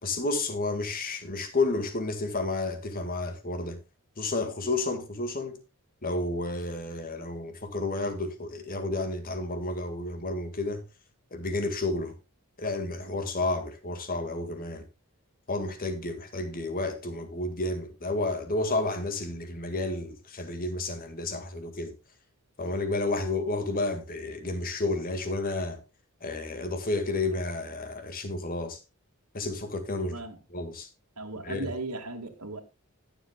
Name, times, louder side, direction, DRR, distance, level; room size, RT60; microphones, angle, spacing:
voice 1, 0.0-3.8 4.2-5.6 6.0-10.8 11.3-12.1 12.6-14.8 15.5-21.9 22.6-25.8 26.2-28.8 29.3-30.2 30.5-30.9 31.4-31.7, left 2 dB, 40° left, 1.9 m, -31 dB
voice 2, 30.1-30.4 31.2-32.6, right 2 dB, 90° right, 2.0 m, -37 dB
20.0 x 7.5 x 2.3 m
head